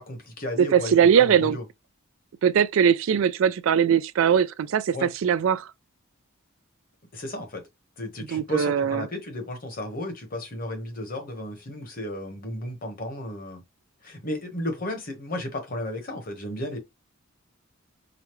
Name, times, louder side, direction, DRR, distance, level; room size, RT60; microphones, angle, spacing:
voice 1, 0.0-1.6 4.9-5.1 7.1-7.6 8.0-13.6 14.0-16.8, left 1 dB, 45° left, 1.1 m, -34 dB
voice 2, 0.6-1.6 2.4-5.7 8.3-9.0, right 8 dB, 65° right, 0.3 m, -21 dB
5.0 x 2.2 x 3.0 m
head